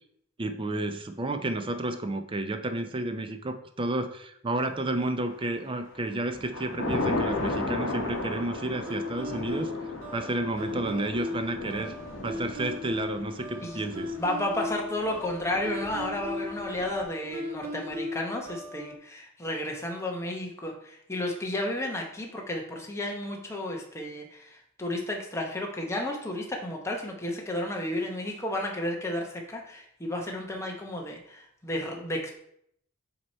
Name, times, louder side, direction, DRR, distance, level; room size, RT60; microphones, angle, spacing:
voice 1, 0.4-9.7 10.1-11.9 12.2-14.1, right 2 dB, 25° right, 8 dB, 0.5 m, -31 dB
Thunder / Rain, 4.9-5.5 5.9-17.0, left 2 dB, 60° left, 1.1 m, -35 dB
sound 1, 8.9-19.0, left 2 dB, 70° right, 0.9 m, -37 dB
voice 2, 14.2-32.4, left 1 dB, 15° left, 0 dB, 0.8 m, -32 dB
7.7 x 2.9 x 4.2 m, 0.70 s
head